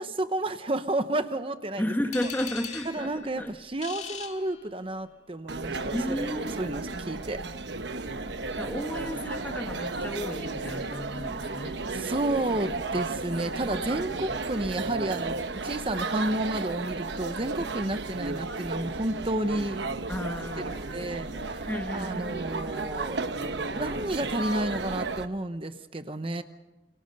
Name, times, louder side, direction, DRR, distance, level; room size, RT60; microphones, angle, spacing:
voice 1, 0.0-1.9 2.9-7.4 11.9-19.8 20.8-23.2 23.6-26.4, right 1 dB, 30° right, 9 dB, 0.9 m, -31 dB
voice 2, 1.8-3.5 5.9-6.5 8.6-11.8 20.1-21.2 21.7-22.3, left 1 dB, 10° left, 7 dB, 1.2 m, -33 dB
sound 1, 2.1-5.2, left 7 dB, 40° left, 2.1 m, -41 dB
sound 2, 5.5-25.3, right 3 dB, 85° right, 1.1 m, -33 dB
29.0 x 24.0 x 5.4 m, 1.0 s
head